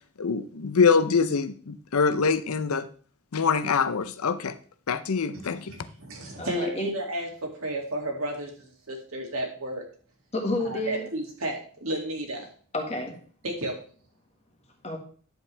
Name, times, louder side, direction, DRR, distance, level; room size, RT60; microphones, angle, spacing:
voice 1, 0.2-2.9 3.3-4.5 4.9-5.7, left 5 dB, 80° left, 0.6 m, -24 dB
voice 2, 5.7-7.3 7.6-8.5 8.9-9.8 10.6-12.5 13.4-13.7, right 1 dB, 75° right, 2.4 m, -32 dB
voice 3, 6.4-6.9 10.3-11.1 12.7-13.1 14.8-15.0, left 1 dB, 30° left, 1.6 m, -30 dB
10.5 x 7.3 x 3.3 m
head